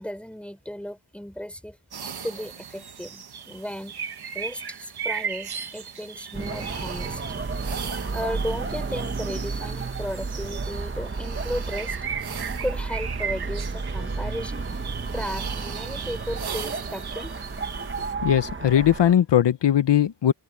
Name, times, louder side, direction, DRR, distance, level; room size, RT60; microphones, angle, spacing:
voice 1, 0.0-1.8 2.2-3.9 4.3-7.2 8.1-12.0 12.6-14.7 15.1-17.3, equal, 5° left, 3.7 m, -35 dB
sound 1, 1.9-18.1, right 7 dB, 65° right, 1.3 m, -37 dB
sound 2, 6.3-19.1, right 4 dB, 30° right, 1.3 m, -32 dB
Trumpet, 13.9-18.1, right 6 dB, 85° right, 4.1 m, -50 dB
voice 2, 18.2-20.3, left 10 dB, 90° left, 0.9 m, -19 dB
open air
wide cardioid pair, 145°, 41 cm